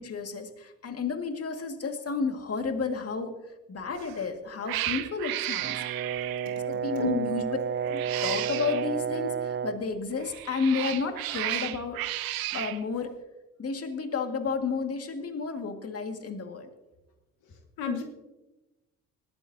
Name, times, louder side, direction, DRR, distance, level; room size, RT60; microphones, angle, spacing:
voice 1, 0.0-5.8 6.7-7.5 7.8-12.0 12.5-13.1 13.6-16.7, left 4 dB, 40° left, 5 dB, 2.0 m, -32 dB
Cat, 3.9-4.2 4.6-6.7 7.8-8.9 10.2-12.8, right 14 dB, 65° right, 0.9 m, -33 dB
Brass instrument, 5.6-9.9, right 7 dB, 30° right, 0.5 m, -31 dB
voice 2, 6.9-7.3 17.8-18.0, left 4 dB, 70° left, 4 dB, 1.6 m, -29 dB
19.5 x 14.0 x 2.8 m, 1.1 s
supercardioid pair, 65°, 38 cm